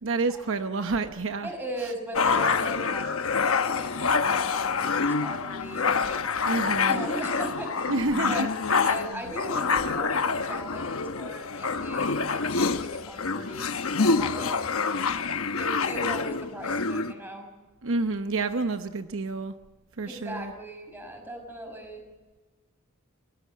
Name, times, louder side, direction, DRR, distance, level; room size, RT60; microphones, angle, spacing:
voice 1, 0.0-1.5 1.8-1.9 6.5-7.0 7.9-8.8 17.8-19.5 20.0-20.5, right 3 dB, 65° right, 8 dB, 0.9 m, -29 dB
voice 2, 1.4-6.6 6.9-8.5 8.8-14.9 15.6-17.7 20.1-22.0, right 1 dB, 10° right, 4 dB, 5.4 m, -39 dB
sound 1, 2.2-17.1, left 4 dB, 70° left, 1.0 m, -27 dB
24.0 x 18.0 x 7.5 m, 1.2 s
head